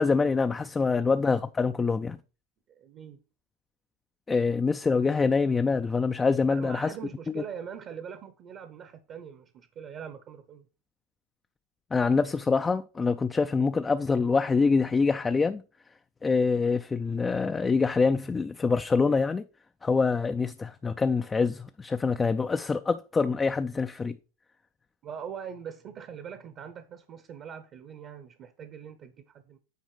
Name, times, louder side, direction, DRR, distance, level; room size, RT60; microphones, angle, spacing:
voice 1, 0.0-2.2 4.3-6.9 7.3-7.4 11.9-15.6 16.2-19.4 19.8-24.2, left 4 dB, 15° left, 0.4 m, -25 dB
voice 2, 2.7-3.2 6.5-10.7 25.0-29.6, right 7 dB, 40° right, 0.9 m, -42 dB
9.3 x 3.9 x 4.9 m
supercardioid pair, 125°, 0 cm